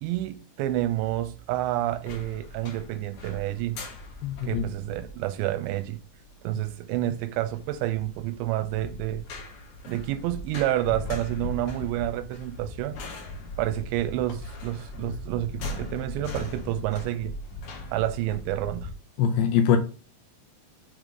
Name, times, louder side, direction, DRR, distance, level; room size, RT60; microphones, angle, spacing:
voice 1, 0.0-3.8 4.4-6.0 6.4-9.3 9.9-13.0 13.6-17.3 17.9-18.9, right 14 dB, 90° right, 2.8 m, -29 dB
sound 1, 1.9-18.9, left 2 dB, 60° left, 2.1 m, -39 dB
voice 2, 4.2-4.6 19.2-19.8, left 8 dB, 80° left, 2.4 m, -22 dB
7.5 x 3.4 x 5.2 m
omnidirectional pair, 5.1 m